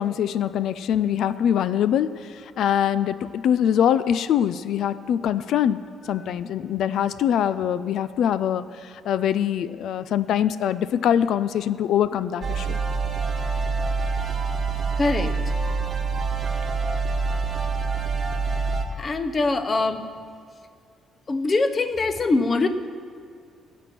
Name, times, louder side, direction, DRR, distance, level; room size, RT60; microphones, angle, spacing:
voice 1, 0.0-2.1 2.6-5.8 6.1-12.8, left 9 dB, 60° left, 14 dB, 0.4 m, -23 dB
sound 1, 12.4-18.8, right 4 dB, 30° right, 1.2 m, -26 dB
voice 2, 15.0-15.3 19.0-20.0 21.3-22.7, left 3 dB, 25° left, 10 dB, 0.7 m, -23 dB
17.0 x 6.1 x 9.2 m, 2.3 s
cardioid pair, 165°, 0 cm